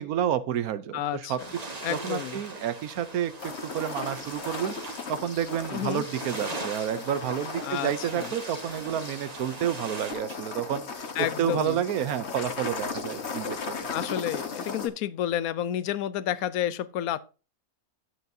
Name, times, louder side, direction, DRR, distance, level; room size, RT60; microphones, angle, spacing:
voice 1, 0.0-1.4 1.9-4.7 5.1-11.0 11.4-13.8, right 10 dB, 80° right, 1.2 m, -30 dB
voice 2, 0.9-1.4 1.8-2.4 5.7-6.1 7.6-8.3 11.1-11.8 13.9-17.2, left 11 dB, 75° left, 1.1 m, -30 dB
sound 1, 1.4-10.1, right 2 dB, 30° right, 1.3 m, -40 dB
sound 2, 3.4-14.9, left 5 dB, 50° left, 1.5 m, -37 dB
11.5 x 7.9 x 2.7 m
omnidirectional pair, 1.5 m